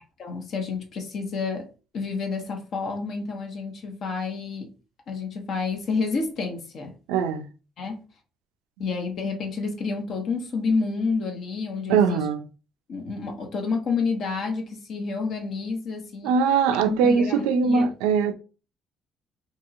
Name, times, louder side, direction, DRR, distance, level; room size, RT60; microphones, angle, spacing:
voice 1, 0.0-1.7 1.9-4.7 5.1-6.9 7.8-8.0 8.8-12.2 12.9-16.3 16.7-17.9, left 4 dB, 60° left, 0.8 m, -29 dB
voice 2, 7.1-7.5 11.9-12.5 16.2-18.3, right 6 dB, 85° right, 0.3 m, -21 dB
2.9 x 2.8 x 2.5 m
supercardioid pair, 60°, 0 cm